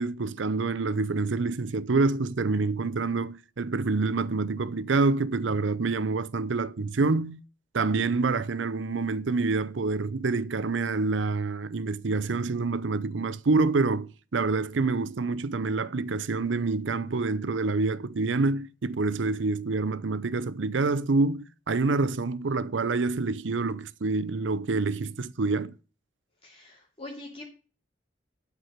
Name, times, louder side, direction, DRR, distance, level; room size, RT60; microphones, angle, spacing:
voice 1, 0.0-7.4 7.7-25.8, right 3 dB, 90° right, 0.6 m, -27 dB
voice 2, 26.4-27.4, left 2 dB, 30° left, 2.7 m, -43 dB
12.0 x 4.8 x 6.4 m
head